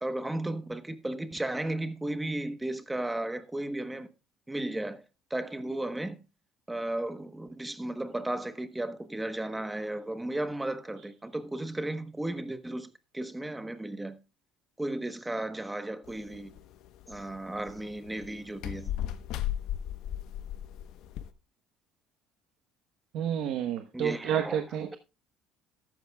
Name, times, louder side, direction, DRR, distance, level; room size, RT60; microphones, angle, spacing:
voice 1, 0.0-4.1 4.5-5.0 5.3-6.2 6.7-14.2 14.8-16.5 17.1-18.9 23.9-24.6, right 1 dB, 10° right, 1.1 m, -34 dB
sound 1, 16.1-21.3, left 11 dB, 65° left, 0.9 m, -37 dB
voice 2, 23.1-25.0, right 9 dB, 65° right, 1.0 m, -30 dB
13.0 x 12.0 x 2.3 m
cardioid pair, 135°, 0 cm